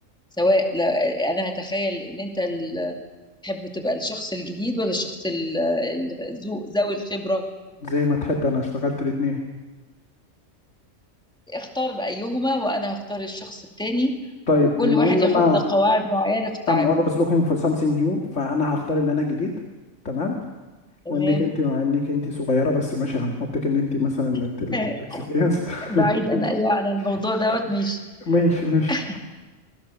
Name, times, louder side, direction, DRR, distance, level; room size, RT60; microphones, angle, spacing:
voice 1, 0.4-3.0 3.4-7.5 11.5-14.2 14.6-17.0 21.0-21.5 24.7-25.3 25.8-28.0 28.9-29.2, left 1 dB, 5° left, 2 dB, 2.4 m, -25 dB
voice 2, 7.8-9.4 14.5-15.6 16.7-19.5 20.0-20.4 21.1-24.9 25.3-26.1 26.3-26.4 28.3-29.2, left 3 dB, 75° left, 1 dB, 2.5 m, -22 dB
26.5 x 21.5 x 7.0 m, 1.2 s
omnidirectional pair, 1.3 m